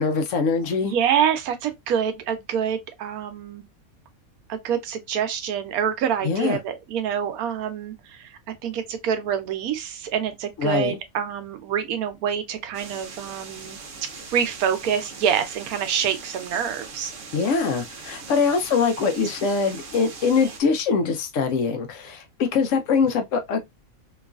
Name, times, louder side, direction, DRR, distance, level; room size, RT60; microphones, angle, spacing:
voice 1, 0.0-0.9 6.2-6.6 10.6-11.0 17.3-23.6, left 5 dB, 70° left, 0.8 m, -23 dB
voice 2, 0.8-3.6 4.5-13.8 14.3-17.1, right 8 dB, 90° right, 1.1 m, -26 dB
sound 1, 12.7-20.6, right 4 dB, 65° right, 1.0 m, -40 dB
2.9 x 2.3 x 2.3 m
omnidirectional pair, 1.5 m